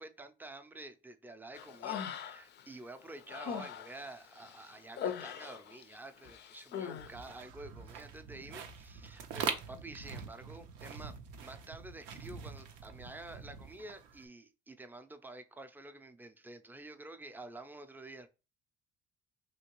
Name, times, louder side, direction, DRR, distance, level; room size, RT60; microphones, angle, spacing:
voice 1, 0.0-11.1 11.4-18.3, right 2 dB, 10° right, 0.4 m, -49 dB
Human voice, 1.5-2.6 3.0-6.0 6.2-7.1, left 8 dB, 55° left, 0.4 m, -41 dB
sound 1, 7.0-14.2, right 7 dB, 90° right, 0.5 m, -43 dB
3.0 x 2.8 x 3.0 m
supercardioid pair, 70°, 21 cm